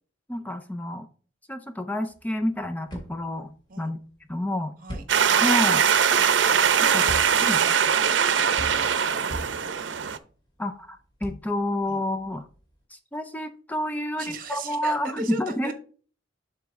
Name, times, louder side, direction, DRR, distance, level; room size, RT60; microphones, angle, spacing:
voice 1, 0.3-1.1 1.5-3.5 3.8-4.0 4.3-4.7 5.4-5.8 6.9-7.0 7.4-7.6 10.6-12.5 12.9-15.7, left 1 dB, 10° left, 8 dB, 0.5 m, -29 dB
sound 1, 2.1-12.8, right 1 dB, 25° left, 2.2 m, -42 dB
sound 2, 5.1-10.2, right 7 dB, 85° right, 0.6 m, -21 dB
voice 2, 6.8-9.2 11.9-12.0 14.2-15.7, right 2 dB, 50° right, 7 dB, 1.2 m, -39 dB
7.4 x 5.9 x 3.5 m, 0.41 s
head